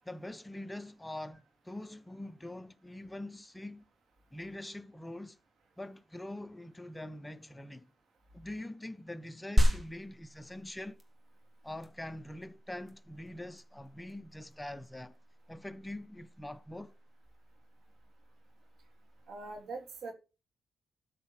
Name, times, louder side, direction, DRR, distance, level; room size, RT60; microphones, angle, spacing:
voice 1, 0.0-3.9 4.3-5.4 5.8-7.9 8.3-11.0 11.6-15.2 15.5-16.9, left 1 dB, 10° left, 0.7 m, -44 dB
sound 1, 9.6-19.5, equal, 30° right, 2.4 m, -35 dB
voice 2, 19.3-20.1, right 3 dB, 75° right, 3.3 m, -42 dB
13.0 x 4.4 x 7.2 m
cardioid pair, 90°, 0 cm